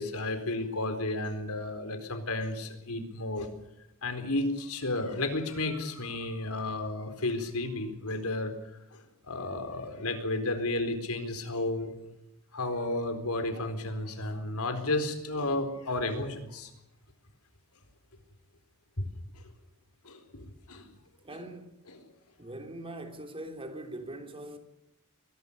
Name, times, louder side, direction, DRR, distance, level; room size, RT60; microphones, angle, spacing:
voice 1, 0.0-3.5 4.0-11.9 12.5-16.7 19.0-19.1 20.0-20.9 21.3-21.4 21.9-22.1, left 2 dB, 70° left, 4.3 m, -33 dB
voice 2, 21.2-21.8 22.4-24.6, right 1 dB, 25° right, 3.4 m, -42 dB
24.0 x 20.0 x 6.8 m
head